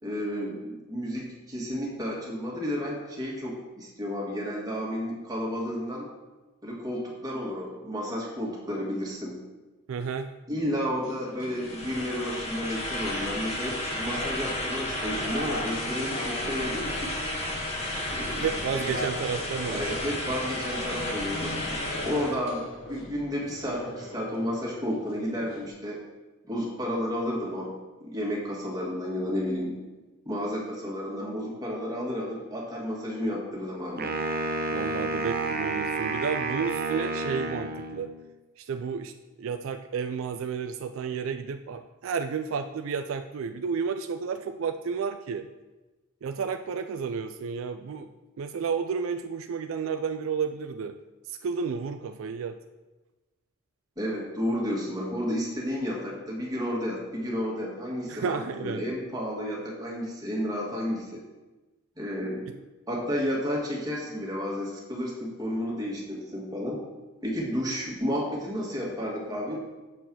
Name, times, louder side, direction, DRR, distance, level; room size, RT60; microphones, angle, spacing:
voice 1, 0.0-6.1 6.6-9.4 10.5-17.1 18.1-18.5 18.7-18.9 19.7-26.0 26.4-27.7 28.0-29.7 30.2-34.1 54.0-61.2 62.0-62.4 62.9-66.8 67.2-69.6, equal, 20° right, -3 dB, 1.7 m, -32 dB
voice 2, 9.9-10.3 18.4-20.0 34.7-38.1 38.6-39.1 39.4-45.5 46.2-48.1 48.4-50.9 51.3-52.5 58.1-58.8, right 6 dB, 70° right, 8 dB, 0.4 m, -31 dB
sound 1, 11.0-25.7, left 1 dB, 75° left, 1.3 m, -41 dB
sound 2, 11.5-22.4, left 1 dB, 30° left, 1.2 m, -33 dB
Wind instrument woodwind instrument, 34.0-38.2, right 3 dB, 45° right, 0.7 m, -30 dB
7.3 x 4.5 x 6.1 m, 1.2 s
head